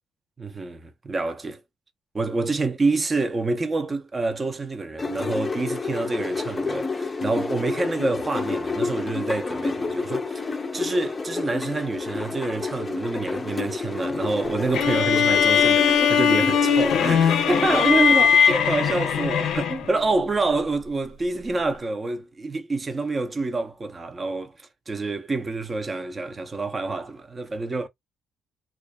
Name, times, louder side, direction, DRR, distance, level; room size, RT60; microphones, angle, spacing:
voice 1, 0.4-1.6 2.1-24.5 24.9-27.9, right 3 dB, 30° right, 0.5 m, -27 dB
sound 1, 5.0-18.3, left 3 dB, 25° left, 0.4 m, -30 dB
sound 2, 14.7-20.0, left 7 dB, 85° left, 0.5 m, -20 dB
2.5 x 2.3 x 2.2 m
cardioid pair, 90°, 0 cm